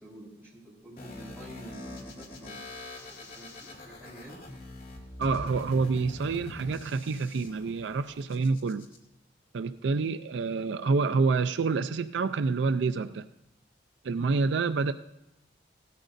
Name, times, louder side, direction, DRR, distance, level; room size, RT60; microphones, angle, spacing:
voice 1, 0.0-4.4, right 1 dB, 15° right, -7 dB, 4.3 m, -49 dB
sound 1, 1.0-9.0, left 1 dB, 50° left, 2.5 m, -43 dB
voice 2, 5.2-8.9 9.5-13.3 14.0-14.9, right 4 dB, 75° right, 10 dB, 0.4 m, -27 dB
17.0 x 13.0 x 2.6 m, 0.87 s
head